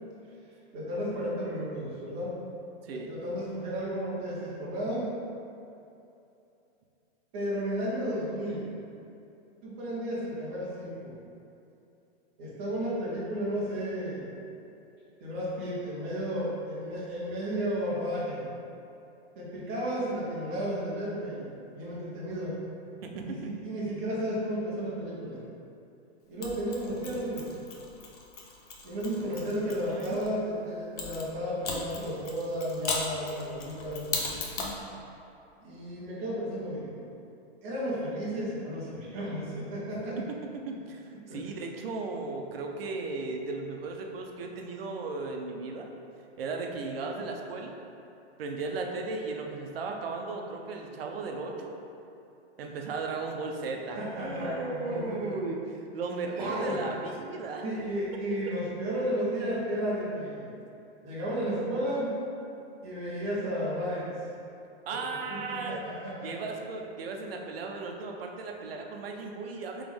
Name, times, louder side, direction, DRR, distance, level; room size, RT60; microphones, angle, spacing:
voice 1, 0.7-2.3 2.9-5.1 7.3-8.7 9.6-11.2 12.4-14.2 15.2-18.4 19.4-22.6 23.2-25.4 26.3-27.6 28.8-34.1 35.6-36.9 37.6-40.2 41.1-41.4 53.9-55.3 56.3-56.9 57.6-60.5 61.0-62.2 62.8-64.1 64.9-65.0 65.3-66.4, equal, 15° right, -7 dB, 0.4 m, -33 dB
voice 2, 23.0-23.5 29.2-29.4 29.6-30.2 40.2-45.9 46.4-47.8 48.4-51.8 52.6-55.6 55.9-57.6 64.9-65.8 66.2-69.8, right 3 dB, 60° right, 2 dB, 0.6 m, -36 dB
Mechanisms, 26.4-30.3 31.0-34.8, left 3 dB, 40° left, 0.5 m, -37 dB
3.6 x 3.0 x 3.4 m, 2.7 s
hypercardioid pair, 165°, 33 cm